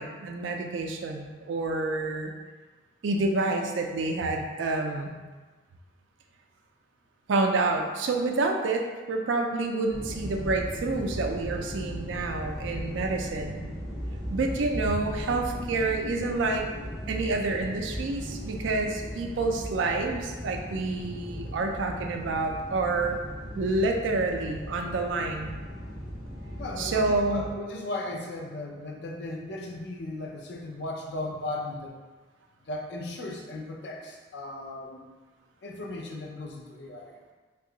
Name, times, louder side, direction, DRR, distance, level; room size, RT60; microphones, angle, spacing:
voice 1, 0.0-2.3 3.0-5.1 7.3-13.7 14.3-16.7 17.1-23.2 23.6-25.5 26.8-27.4, right 3 dB, 80° right, 3 dB, 0.4 m, -28 dB
sound 1, 9.9-27.5, equal, ahead, 0.5 m, -37 dB
voice 2, 26.6-32.0 32.6-35.1 35.6-37.2, left 2 dB, 60° left, 1 dB, 0.4 m, -36 dB
2.8 x 2.3 x 3.8 m, 1.3 s
head